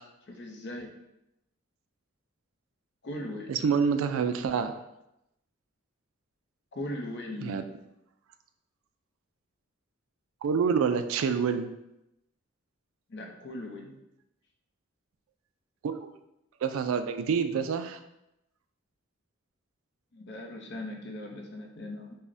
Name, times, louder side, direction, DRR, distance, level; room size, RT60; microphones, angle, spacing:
voice 1, 0.3-0.9 3.0-3.5 6.7-7.6 13.1-14.0 20.1-22.2, left 1 dB, 55° left, 2 dB, 0.6 m, -39 dB
voice 2, 3.5-4.8 7.4-7.6 10.4-11.7 15.8-16.0 16.6-18.0, right 6 dB, 75° right, 9 dB, 0.3 m, -27 dB
5.5 x 2.1 x 2.6 m, 0.86 s
head